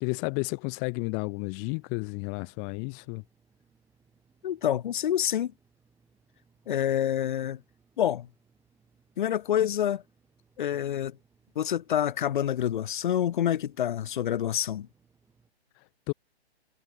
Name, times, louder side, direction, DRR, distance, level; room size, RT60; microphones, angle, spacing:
voice 1, 0.0-3.2 15.8-16.1, left 40 dB or more, 20° left, 0.9 m, -32 dB
sound 1, 0.9-15.5, right 5 dB, 10° right, 7.5 m, -67 dB
voice 2, 4.4-5.5 6.7-7.6 8.0-8.3 9.2-10.0 10.6-11.2 11.6-14.9, left 10 dB, 50° left, 0.5 m, -27 dB
hypercardioid pair, 145°, 33 cm